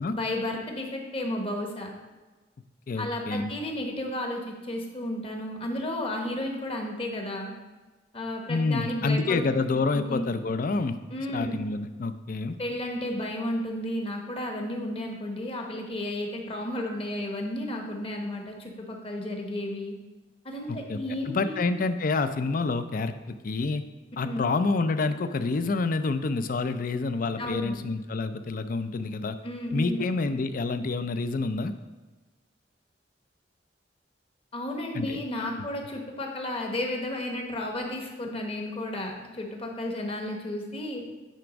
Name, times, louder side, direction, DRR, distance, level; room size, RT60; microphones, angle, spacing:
voice 1, 0.1-1.9 3.0-7.5 8.1-9.4 9.9-10.3 11.1-11.6 12.6-19.9 20.4-21.6 24.2-24.5 27.4-27.8 29.4-30.1 34.5-41.0, left 1 dB, 35° left, 1 dB, 1.1 m, -32 dB
voice 2, 2.9-3.5 8.5-11.0 11.3-12.6 20.7-21.0 21.3-23.8 24.2-29.4 29.7-31.7 34.9-35.2 35.6-35.7, left 3 dB, 50° left, 10 dB, 0.4 m, -28 dB
9.2 x 3.5 x 5.1 m, 1.2 s
head